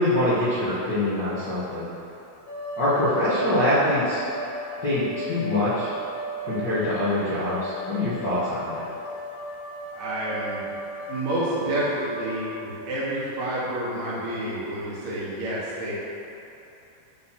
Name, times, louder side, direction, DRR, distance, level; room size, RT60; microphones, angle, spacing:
voice 1, 0.0-1.9 2.8-4.2 4.8-5.9 6.5-8.8, left 1 dB, 70° left, -12 dB, 1.0 m, -24 dB
sound 1, 2.5-12.2, equal, 90° left, 2.6 m, -36 dB
voice 2, 9.9-10.7 11.1-16.0, right 1 dB, 65° right, -9 dB, 2.4 m, -29 dB
6.4 x 2.8 x 5.6 m, 3.0 s
omnidirectional pair, 3.7 m